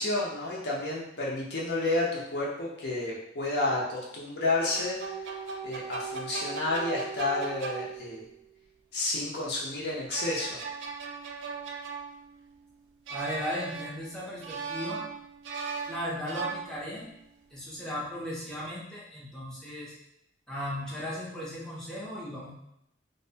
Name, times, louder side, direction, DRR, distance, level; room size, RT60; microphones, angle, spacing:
voice 1, 0.0-5.0 5.6-8.3 8.9-10.6, left 2 dB, 65° left, -4 dB, 0.6 m, -30 dB
sound 1, 4.6-8.3 9.9-12.6 13.1-14.1 14.4-17.1, right 4 dB, 85° right, 0.3 m, -38 dB
voice 2, 13.1-15.0 15.9-17.1 17.5-19.9 20.5-22.5, equal, 5° left, -7 dB, 0.5 m, -36 dB
2.6 x 2.1 x 2.7 m, 0.79 s
head